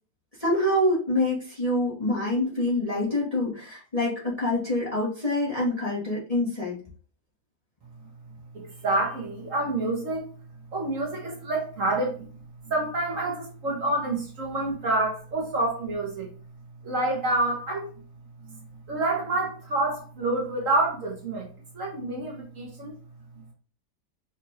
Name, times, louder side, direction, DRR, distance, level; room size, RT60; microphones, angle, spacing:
voice 1, 0.4-6.8, left 1 dB, 25° left, -6 dB, 1.3 m, -26 dB
voice 2, 8.5-10.3 10.7-12.2 12.6-16.3 16.8-17.9 18.5-18.6 18.9-21.5 21.7-22.9, right 2 dB, 55° right, -1 dB, 1.4 m, -28 dB
5.4 x 2.6 x 2.9 m, 0.38 s
omnidirectional pair, 1.8 m